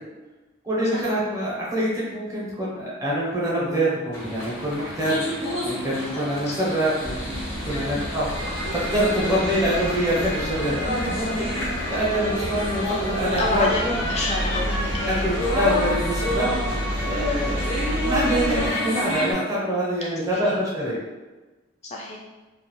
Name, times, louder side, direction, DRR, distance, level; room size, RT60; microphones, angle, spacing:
voice 1, 0.6-14.1 15.1-16.6 17.0-17.6 18.0-21.0, equal, 15° right, -6 dB, 0.6 m, -25 dB
sound 1, 4.1-19.3, equal, 70° left, 0.9 m, -30 dB
voice 2, 6.1-6.6 7.7-8.1 13.4-15.6 17.3-17.6 20.4-20.6 21.8-22.2, left 2 dB, 30° left, -2 dB, 0.4 m, -29 dB
sound 2, 7.0-18.7, equal, 65° right, 0.5 m, -30 dB
2.4 x 2.2 x 2.9 m, 1.2 s
head